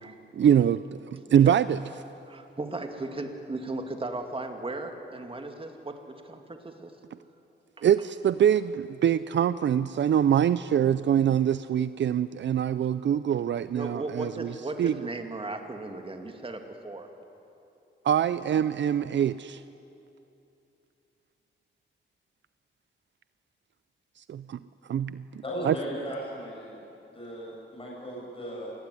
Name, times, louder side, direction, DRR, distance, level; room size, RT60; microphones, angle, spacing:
voice 1, 0.4-1.8 7.8-14.5 14.8-14.9 18.0-19.6 24.3-24.6 24.9-25.2 25.6-25.7, right 9 dB, 70° right, 15 dB, 0.5 m, -24 dB
voice 2, 1.2-1.6 2.2-6.9 7.8-7.9 13.7-17.1, right 2 dB, 30° right, 5 dB, 2.5 m, -36 dB
voice 3, 25.4-26.8 27.1-28.7, right 1 dB, 25° left, -4 dB, 7.8 m, -36 dB
27.5 x 20.0 x 9.9 m, 2.8 s
wide cardioid pair, 110°, 20 cm